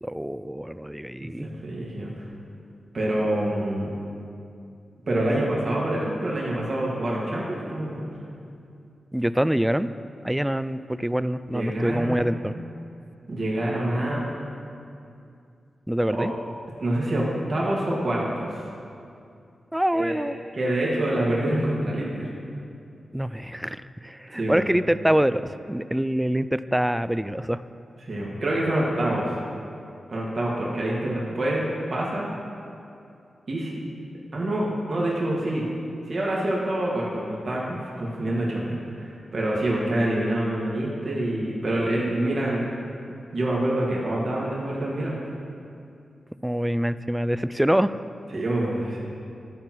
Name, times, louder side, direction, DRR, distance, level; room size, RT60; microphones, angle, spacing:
voice 1, 0.0-1.5 9.1-9.9 10.2-12.5 15.9-16.3 19.7-20.4 23.1-27.6 46.4-48.0, equal, 10° right, 14 dB, 0.3 m, -25 dB
voice 2, 1.2-2.1 2.9-3.9 5.1-8.0 11.5-12.3 13.3-14.2 16.1-16.3 16.8-18.6 19.9-20.1 20.5-22.3 24.3-24.6 28.0-29.4 30.1-32.3 33.5-33.8 34.3-35.6 36.1-42.6 43.3-45.2 48.3-49.0, right 1 dB, 60° right, -4 dB, 1.8 m, -26 dB
12.0 x 4.4 x 5.9 m, 2.5 s
supercardioid pair, 40°, 0 cm